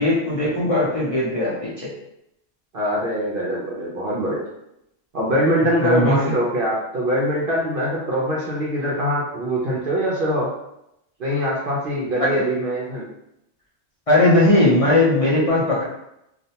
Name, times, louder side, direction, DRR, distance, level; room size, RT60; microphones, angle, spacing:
voice 1, 0.0-1.9 5.8-6.3 12.2-12.4 14.1-15.8, left 1 dB, 45° left, -7 dB, 0.5 m, -18 dB
voice 2, 2.7-4.4 5.1-10.5 11.2-13.1, equal, 60° right, -5 dB, 0.7 m, -23 dB
2.4 x 2.1 x 2.7 m, 0.81 s
omnidirectional pair, 1.2 m